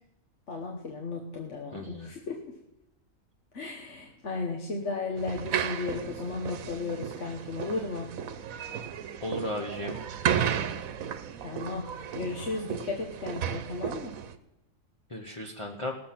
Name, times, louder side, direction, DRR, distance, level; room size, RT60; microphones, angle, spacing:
voice 1, 0.5-2.4 3.5-8.1 11.4-11.9 12.1-14.1, left 3 dB, 60° left, 1 dB, 1.5 m, -35 dB
voice 2, 1.7-2.1 9.2-10.0 15.1-15.9, left 1 dB, 25° left, 0 dB, 1.0 m, -35 dB
sound 1, 5.2-14.3, right 8 dB, 90° right, 1.2 m, -34 dB
18.5 x 7.5 x 5.9 m, 0.88 s
omnidirectional pair, 1.4 m